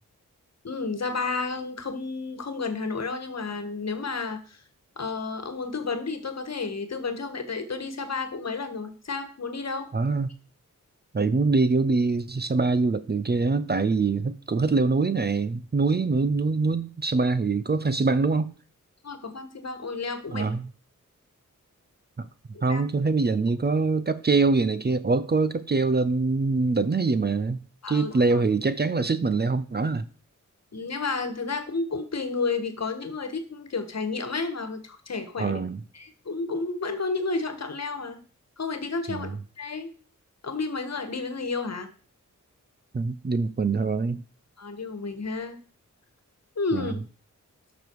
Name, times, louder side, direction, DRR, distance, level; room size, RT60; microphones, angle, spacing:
voice 1, 0.6-4.6 5.0-9.9 19.0-20.5 22.7-22.8 27.8-28.4 30.7-35.6 35.9-38.2 38.6-39.3 39.6-39.9 40.4-41.9 44.6-45.6 46.6-47.0, left 4 dB, 55° left, 1.6 m, -31 dB
voice 2, 9.9-10.3 11.1-18.5 20.3-20.7 22.2-22.3 22.6-27.6 27.9-30.0 35.4-35.8 39.1-39.4 42.9-44.2 46.7-46.9, right 4 dB, 30° right, 0.6 m, -24 dB
12.0 x 6.2 x 4.7 m
wide cardioid pair, 95°, 31 cm